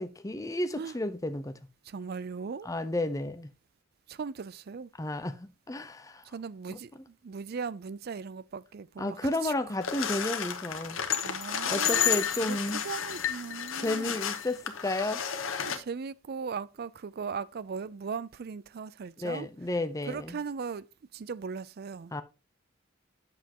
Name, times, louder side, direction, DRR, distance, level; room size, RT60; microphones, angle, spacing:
voice 1, 0.0-1.6 2.7-3.5 5.0-6.2 9.0-11.0 11.6-12.8 13.8-15.2 19.2-20.4 22.1-22.2, left 1 dB, 15° left, 0.6 m, -32 dB
voice 2, 1.8-2.7 4.1-4.9 6.2-9.5 11.2-12.6 12.8-14.1 15.6-19.5 20.0-22.1, right 5 dB, 50° right, 0.4 m, -38 dB
sound 1, 9.8-15.8, left 8 dB, 90° left, 1.1 m, -31 dB
8.3 x 6.8 x 2.9 m
head